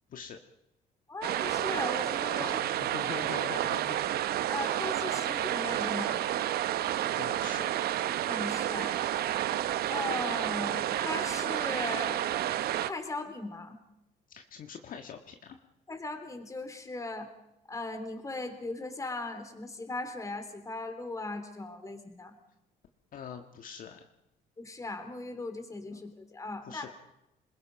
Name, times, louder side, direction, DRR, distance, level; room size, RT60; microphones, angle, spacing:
voice 1, 1.1-2.6 4.5-6.2 8.2-9.0 9.9-12.2 12.8-13.8 15.9-17.3 17.7-22.3 24.6-26.9, left 2 dB, 20° left, 7 dB, 3.3 m, -38 dB
sound 1, 1.2-12.9, right 12 dB, 65° right, 0.9 m, -30 dB
voice 2, 2.3-4.0 4.5-4.9 7.1-7.7 14.3-15.6 23.1-24.0 25.9-26.0 26.6-26.9, left 7 dB, 55° left, 5 dB, 1.6 m, -44 dB
27.0 x 21.0 x 5.3 m, 0.88 s
cardioid pair, 110°, 17 cm